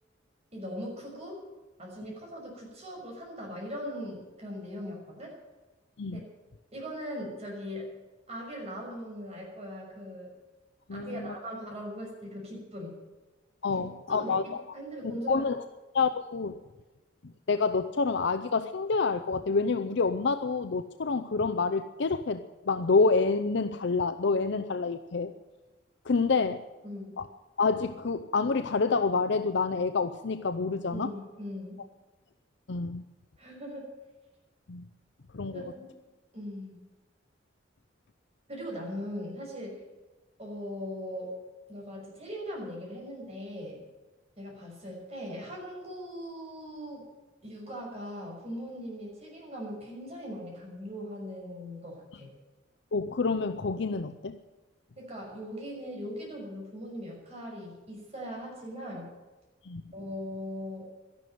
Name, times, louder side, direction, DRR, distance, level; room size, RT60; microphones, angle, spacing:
voice 1, 0.5-1.4 1.8-5.3 6.1-6.2 6.7-7.9 8.3-10.3 10.9-13.0 14.1-14.4 14.7-15.5 26.8-27.1 30.9-31.8 33.4-33.9 35.5-35.9 36.3-36.8 38.5-39.8 40.4-41.3 41.7-43.8 44.4-47.0 47.4-52.3 55.0-59.1 59.9-60.9, equal, 35° right, -2 dB, 6.1 m, -40 dB
voice 2, 10.9-11.3 13.6-14.6 15.0-15.6 15.9-16.6 17.5-22.4 22.7-25.3 26.1-26.6 27.2-27.3 27.6-31.1 32.7-33.0 34.7-34.9 35.3-35.6 52.9-54.4 59.6-59.8, left 4 dB, 65° left, 9 dB, 0.6 m, -28 dB
12.5 x 11.5 x 9.3 m, 1.2 s
head